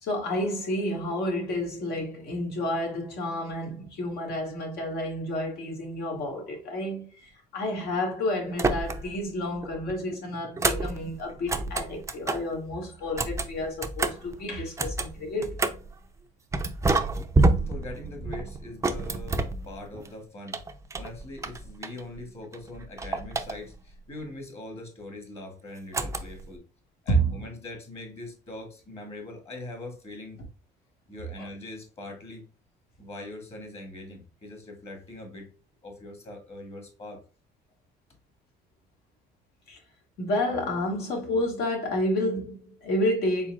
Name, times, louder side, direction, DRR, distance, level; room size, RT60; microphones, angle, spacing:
voice 1, 0.0-15.6 27.1-27.4 31.4-31.5 39.7-39.8 40.2-43.5, equal, 70° left, 1.7 m, -30 dB
sound 1, 8.5-9.3 9.6-12.5 13.0-15.9 16.5-20.1 20.5-22.2 22.5-23.9 25.9-26.6, right 3 dB, 15° right, 0.5 m, -29 dB
voice 2, 17.4-20.6 20.9-26.6 27.0-30.4 31.1-32.5 33.0-35.5 35.8-37.2, left 1 dB, 35° left, 2.0 m, -42 dB
4.4 x 3.9 x 2.3 m
cardioid pair, 110°, 17 cm